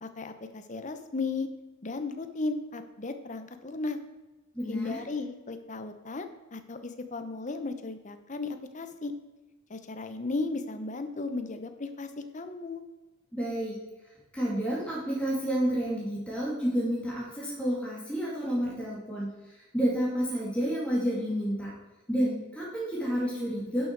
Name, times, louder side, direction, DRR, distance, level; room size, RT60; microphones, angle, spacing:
voice 1, 0.0-1.5 1.8-4.0 4.7-9.1 9.7-12.8, left 3 dB, 35° left, 9 dB, 0.8 m, -35 dB
voice 2, 4.5-5.0 13.3-13.8 14.3-19.3 19.7-21.7 22.1-23.8, equal, 5° left, -6 dB, 2.4 m, -30 dB
11.0 x 6.4 x 4.6 m, 1.1 s
head